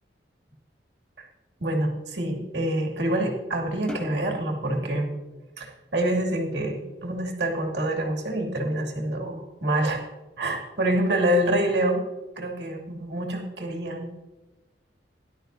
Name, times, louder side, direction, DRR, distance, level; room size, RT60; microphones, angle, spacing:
voice 1, 1.6-5.1 5.6-10.0 10.4-12.0 12.4-14.1, right 1 dB, 75° right, -1 dB, 2.5 m, -26 dB
sound 1, 3.9-6.4, left 2 dB, 5° left, 0.9 m, -42 dB
18.0 x 12.0 x 2.7 m, 1.1 s
head